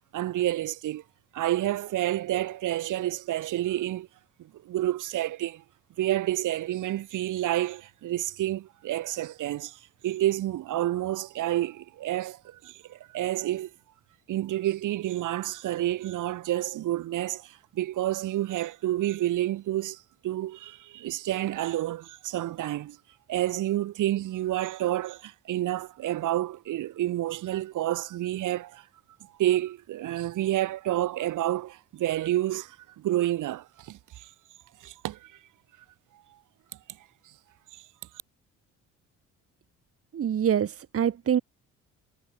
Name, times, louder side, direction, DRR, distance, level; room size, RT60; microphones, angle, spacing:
voice 1, 0.1-1.0 1.3-4.1 4.4-5.6 6.0-13.7 14.3-23.0 23.3-28.8 29.4-34.3 34.8-35.3 37.7-37.8, right 14 dB, 85° right, 7.4 m, -29 dB
voice 2, 40.1-41.4, right 9 dB, 50° right, 1.4 m, -25 dB
cardioid pair, 90°, 30 cm